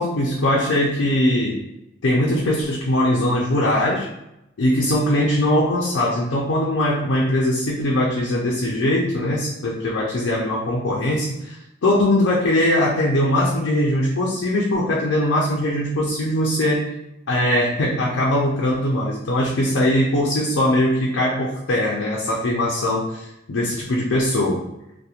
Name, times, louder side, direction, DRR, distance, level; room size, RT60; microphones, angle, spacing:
voice 1, 0.0-1.6 2.0-4.1 4.6-16.9 17.3-24.6, left 1 dB, 90° left, -4 dB, 0.5 m, -21 dB
2.8 x 2.1 x 2.4 m, 0.86 s
head